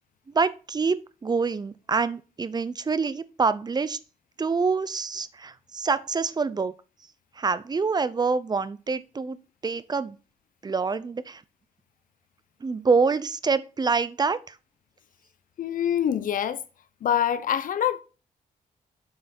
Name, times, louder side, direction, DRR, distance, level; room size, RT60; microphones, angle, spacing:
voice 1, 0.3-4.0 4.4-6.7 7.3-9.4 9.6-10.2 10.6-11.4 12.6-14.6, right 4 dB, 25° right, 0.6 m, -26 dB
voice 2, 15.6-16.6 17.0-18.0, left 9 dB, 65° left, 0.8 m, -25 dB
7.9 x 5.5 x 4.4 m
cardioid pair, 100°, 15 cm